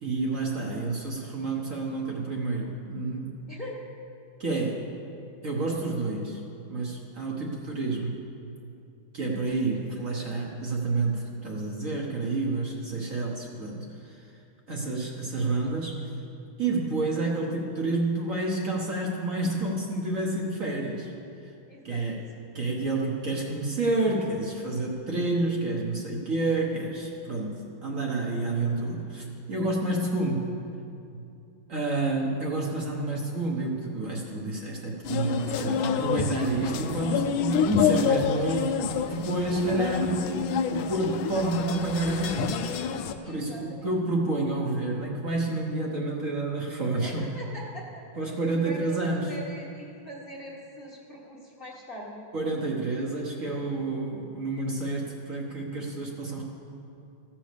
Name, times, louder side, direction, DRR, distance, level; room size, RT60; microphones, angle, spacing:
voice 1, 0.0-3.3 4.4-4.9 5.4-6.4 6.7-8.2 9.1-14.2 14.7-16.0 16.6-21.1 21.8-22.2 22.5-30.5 31.1-31.2 31.7-38.8 39.1-42.6 43.3-47.2 48.2-49.3 52.3-56.4, right 2 dB, 45° right, -2 dB, 1.4 m, -29 dB
voice 2, 3.5-3.8 21.7-22.0 39.4-39.8 43.2-43.9 47.0-48.0 48.6-49.0 49.3-52.3, equal, 30° left, -3 dB, 1.4 m, -42 dB
sound 1, 35.0-43.1, left 7 dB, 85° left, 1.4 m, -28 dB
15.5 x 6.3 x 6.7 m, 2.6 s
omnidirectional pair, 2.1 m